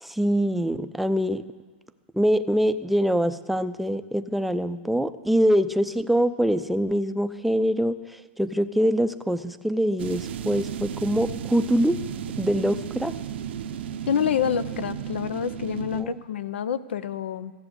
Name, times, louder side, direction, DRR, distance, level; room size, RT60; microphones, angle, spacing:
voice 1, 0.0-1.4 2.1-8.0 8.4-12.0 12.4-13.1 16.0-16.1, equal, ahead, 11 dB, 0.5 m, -24 dB
sound 1, 10.0-16.0, right 9 dB, 80° right, 0.7 m, -34 dB
voice 2, 14.1-17.5, left 8 dB, 85° left, 15 dB, 0.6 m, -27 dB
14.0 x 7.4 x 8.0 m, 1.4 s
hypercardioid pair, 130°, 6 cm